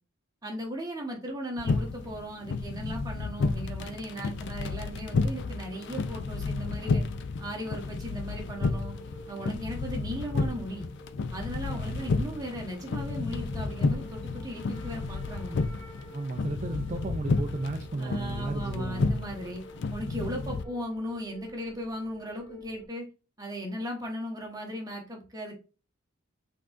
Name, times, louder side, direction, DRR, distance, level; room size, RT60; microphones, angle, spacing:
voice 1, 0.4-7.0 7.4-8.9 9.3-10.9 11.3-15.7 18.0-19.6 19.9-23.1 23.4-25.5, equal, 15° right, 1.1 m, -37 dB
sound 1, 1.6-20.6, left 3 dB, 50° left, 0.4 m, -32 dB
sound 2, 4.4-22.9, left 1 dB, 15° left, 1.7 m, -50 dB
voice 2, 11.7-12.1 16.1-19.2, right 3 dB, 30° right, 0.4 m, -34 dB
5.7 x 3.7 x 2.5 m
head